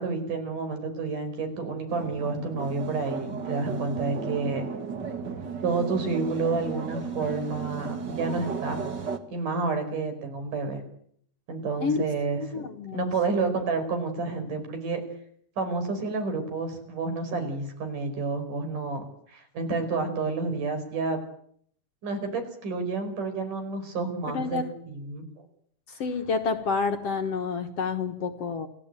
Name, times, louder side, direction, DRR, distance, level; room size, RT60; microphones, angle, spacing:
voice 1, 0.0-4.6 5.6-8.9 9.3-10.8 11.5-15.0 15.6-19.0 19.3-21.2 22.0-25.5, right 4 dB, 70° right, 8 dB, 6.4 m, -30 dB
sound 1, 1.9-9.2, right 5 dB, 40° right, 2.0 m, -34 dB
voice 2, 12.4-13.5 24.3-24.7 25.9-28.7, left 5 dB, 55° left, 7 dB, 2.1 m, -29 dB
28.5 x 17.5 x 9.0 m, 0.66 s
omnidirectional pair, 3.8 m